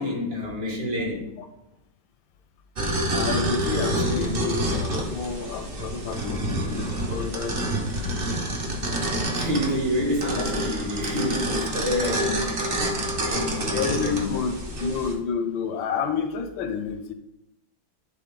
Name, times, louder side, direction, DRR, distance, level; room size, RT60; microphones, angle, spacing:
voice 1, 0.0-1.3 9.3-12.9 13.3-14.3, left 1 dB, 60° right, -1 dB, 2.3 m, -28 dB
sound 1, 2.8-15.1, right 1 dB, 40° right, 0.8 m, -28 dB
voice 2, 3.0-7.6 8.0-8.4 13.7-17.1, left 6 dB, 80° left, 8 dB, 1.3 m, -30 dB
9.4 x 3.9 x 3.8 m, 0.86 s
omnidirectional pair, 2.1 m